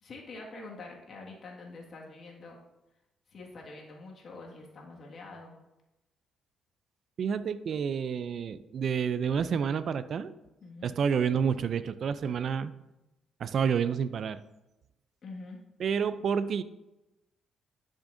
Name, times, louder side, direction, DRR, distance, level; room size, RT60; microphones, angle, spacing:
voice 1, 0.0-2.6 3.3-5.6 10.6-10.9 15.2-15.6, left 3 dB, 55° left, -1 dB, 1.9 m, -45 dB
voice 2, 7.2-10.3 10.8-12.7 13.4-14.4 15.8-16.6, right 7 dB, 60° right, 14 dB, 0.4 m, -29 dB
11.5 x 6.3 x 2.7 m, 0.97 s
cardioid pair, 90°, 0 cm